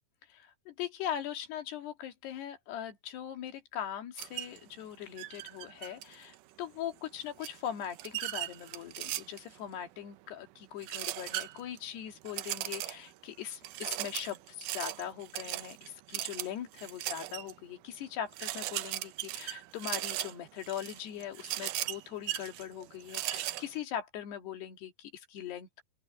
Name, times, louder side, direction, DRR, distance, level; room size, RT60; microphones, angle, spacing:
voice 1, 0.3-25.8, left 10 dB, 85° left, 4.3 m, -41 dB
sound 1, 4.2-4.6 5.2-6.4 7.4-9.6 10.8-11.8 12.3-13.1 13.6-17.5 17.9-18.0 18.3-23.7, right 15 dB, 85° right, 1.9 m, -38 dB
open air
omnidirectional pair, 4.6 m